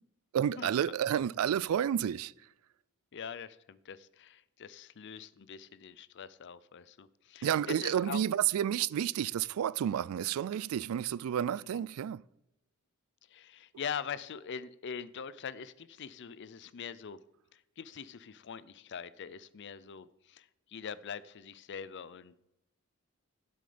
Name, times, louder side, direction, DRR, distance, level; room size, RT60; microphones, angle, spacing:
voice 1, 0.3-2.3 7.4-12.2, right 9 dB, 70° right, 0.3 m, -30 dB
voice 2, 3.1-8.2 11.5-11.8 13.3-17.2 17.5-22.5, left 7 dB, 55° left, 0.5 m, -43 dB
10.0 x 7.9 x 5.1 m
head